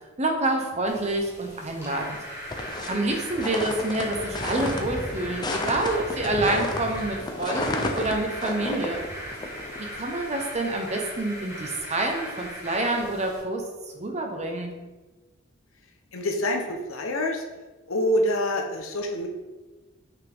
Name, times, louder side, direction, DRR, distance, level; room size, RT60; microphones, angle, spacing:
voice 1, 0.2-2.2 2.9-9.0 9.9-13.6 13.9-14.7, right 2 dB, 35° right, 3 dB, 0.9 m, -27 dB
sound 1, 0.9-13.4, equal, 15° right, 1.9 m, -39 dB
sound 2, 2.5-10.0, left 2 dB, 20° left, 0.6 m, -32 dB
voice 2, 16.1-17.4 17.9-19.3, left 1 dB, 85° left, 3 dB, 1.0 m, -26 dB
5.9 x 5.6 x 3.6 m, 1.2 s
head